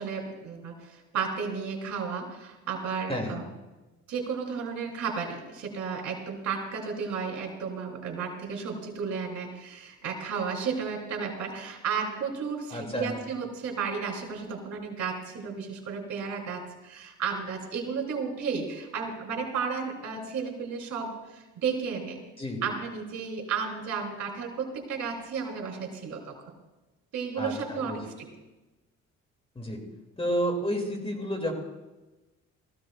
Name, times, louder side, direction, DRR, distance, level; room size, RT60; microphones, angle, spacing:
voice 1, 0.0-3.4 4.1-22.2 22.6-26.5 27.1-28.3, right 6 dB, 70° right, 1 dB, 3.5 m, -33 dB
voice 2, 12.7-13.1 22.4-22.6 27.4-28.0 29.5-29.8 30.2-31.5, equal, 20° left, 2 dB, 3.1 m, -30 dB
19.5 x 14.5 x 2.6 m, 1.1 s
cardioid pair, 90°, 30 cm